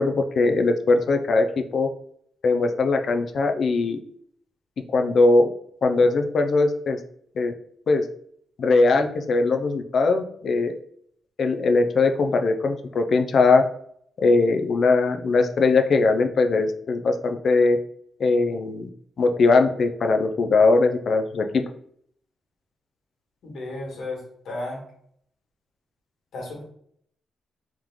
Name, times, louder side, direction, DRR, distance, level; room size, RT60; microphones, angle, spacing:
voice 1, 0.0-1.9 2.4-4.0 4.9-5.5 5.8-7.0 7.4-7.5 7.9-8.1 8.6-10.7 11.4-13.6 14.2-17.8 18.2-18.9 19.2-21.6, left 3 dB, 50° left, 6 dB, 0.4 m, -20 dB
voice 2, 23.4-24.8 26.3-26.6, left 2 dB, 75° left, -2 dB, 1.6 m, -34 dB
3.5 x 3.1 x 3.7 m, 0.66 s
wide cardioid pair, 160°, 0 cm